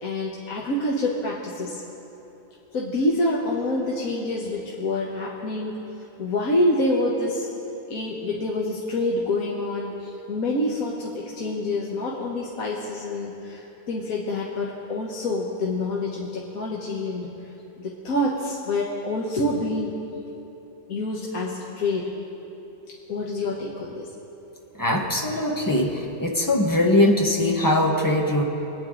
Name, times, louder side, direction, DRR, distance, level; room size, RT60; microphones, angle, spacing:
voice 1, 0.0-1.8 2.7-5.7 6.2-7.5 7.9-17.3 17.8-19.9 20.9-22.0 23.1-24.1, left 1 dB, 70° left, -3 dB, 1.6 m, -27 dB
voice 2, 24.7-28.4, left 1 dB, 15° left, 0 dB, 1.0 m, -21 dB
23.0 x 9.5 x 3.8 m, 3.0 s
omnidirectional pair, 1.5 m